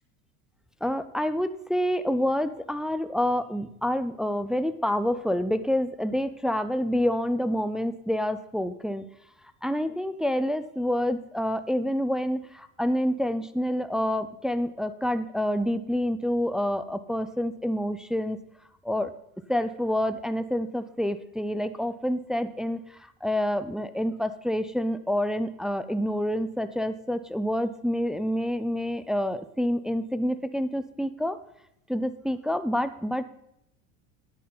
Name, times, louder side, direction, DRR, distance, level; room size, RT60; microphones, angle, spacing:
voice 1, 0.8-9.0 9.6-18.4 18.8-19.1 19.5-31.4 31.9-33.2, equal, ahead, 11 dB, 0.5 m, -28 dB
10.0 x 8.5 x 5.4 m, 0.79 s
supercardioid pair, 105°, 40 cm